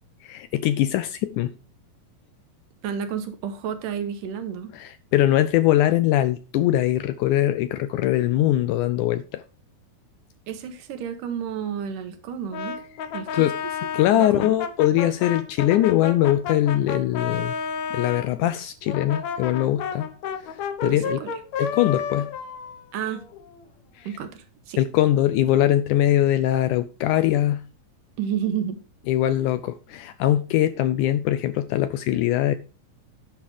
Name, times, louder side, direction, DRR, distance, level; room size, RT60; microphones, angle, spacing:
voice 1, 0.3-1.5 4.7-9.4 13.3-13.6 13.9-17.5 17.9-20.1 20.4-21.2 21.6-22.3 24.0-24.1 24.8-27.6 29.1-32.6, left 13 dB, 80° left, 1.8 m, -22 dB
voice 2, 2.8-4.7 10.5-12.8 13.1-13.5 14.3-14.5 20.8-21.3 22.9-23.3 24.0-24.8 28.2-28.8, right 8 dB, 75° right, 2.6 m, -31 dB
Brass instrument, 12.5-18.3 18.9-23.6, left 6 dB, 65° left, 2.0 m, -31 dB
10.5 x 5.7 x 4.8 m
omnidirectional pair, 3.9 m